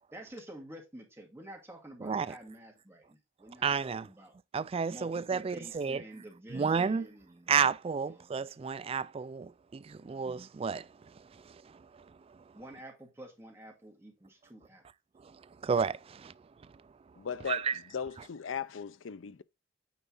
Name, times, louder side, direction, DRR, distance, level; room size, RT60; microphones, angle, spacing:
voice 1, 0.1-4.3 4.9-7.5 8.1-8.3 12.5-14.8, right 1 dB, 15° right, 2.1 m, -49 dB
voice 2, 2.0-2.3 3.6-4.1 4.5-6.0 6.5-7.1 7.5-10.9 11.3-11.8 15.2-15.3 15.6-16.3 17.5-17.8, right 6 dB, 30° right, 0.3 m, -31 dB
voice 3, 17.2-19.4, left 7 dB, 85° left, 0.5 m, -38 dB
9.2 x 4.0 x 3.8 m
head